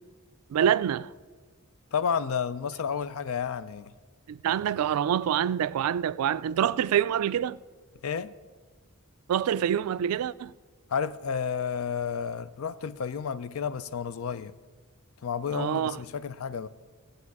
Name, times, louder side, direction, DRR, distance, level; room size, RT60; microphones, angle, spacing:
voice 1, 0.5-1.1 4.3-7.6 9.3-10.5 15.5-16.0, right 9 dB, 80° right, 0.3 m, -26 dB
voice 2, 1.9-3.9 8.0-8.3 10.9-14.6 15.2-16.7, left 6 dB, 75° left, 0.4 m, -31 dB
15.5 x 7.9 x 4.7 m
head